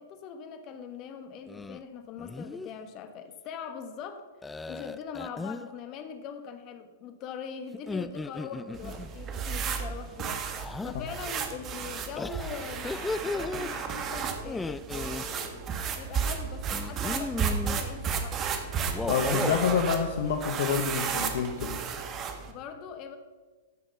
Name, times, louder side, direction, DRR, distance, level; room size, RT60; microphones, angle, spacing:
voice 1, 0.0-4.3 4.7-10.4 10.8-18.4 22.5-23.2, left 6 dB, 40° left, 8 dB, 1.5 m, -42 dB
sound 1, 1.5-1.8 2.2-2.7 4.4-5.7 7.7-9.1 10.6-11.0 12.2-13.7 14.4-15.2 16.7-17.8 18.8-19.8, left 3 dB, 10° left, 0.4 m, -35 dB
sound 2, 8.7-22.5, right 6 dB, 30° right, 1.5 m, -33 dB
voice 2, 19.0-21.8, left 6 dB, 65° left, 7 dB, 1.0 m, -27 dB
13.5 x 6.5 x 5.9 m, 1.4 s
hypercardioid pair, 115°, 0 cm